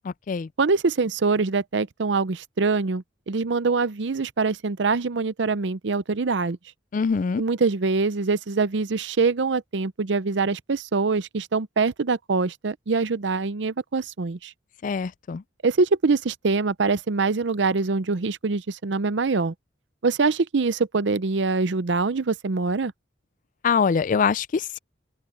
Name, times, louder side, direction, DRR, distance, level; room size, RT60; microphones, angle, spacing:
voice 1, 0.6-6.6 7.4-14.5 15.6-19.5 20.0-22.9, right 4 dB, 70° right, 0.6 m, -24 dB
voice 2, 6.9-7.4 14.8-15.4 23.6-24.8, left 5 dB, 45° left, 0.3 m, -23 dB
open air
head